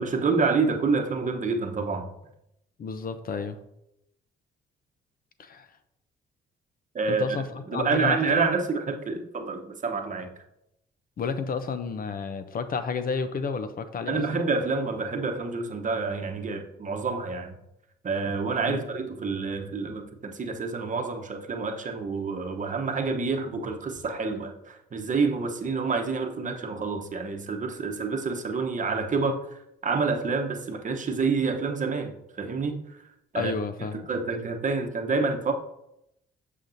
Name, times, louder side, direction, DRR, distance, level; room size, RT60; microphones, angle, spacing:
voice 1, 0.0-2.1 6.9-7.2 7.7-10.3 14.0-17.5 18.0-33.0 33.3-33.5 33.9-35.5, right 4 dB, 40° right, 0.9 m, -28 dB
voice 2, 2.8-3.6 5.4-5.7 7.1-8.5 11.2-14.5 18.7-18.8 33.3-34.1, left 5 dB, 45° left, 0.6 m, -31 dB
7.1 x 6.6 x 2.6 m
cardioid pair, 90°, 20 cm